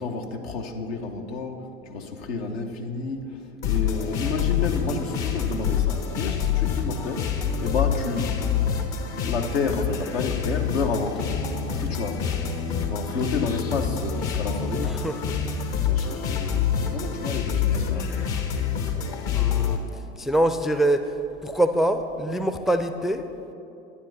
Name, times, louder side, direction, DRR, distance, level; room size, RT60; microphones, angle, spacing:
voice 1, 0.0-8.6 9.1-11.4 11.8-12.3 12.8-15.1 15.8-18.1, left 4 dB, 70° left, 3 dB, 1.1 m, -30 dB
sound 1, 3.6-19.8, left 7 dB, 55° left, 1.4 m, -26 dB
voice 2, 14.9-15.3 19.3-19.8 20.2-21.1 21.4-23.3, right 1 dB, ahead, 8 dB, 0.4 m, -24 dB
12.0 x 9.9 x 5.3 m, 2.8 s
figure-of-eight pair, 70°, 32 cm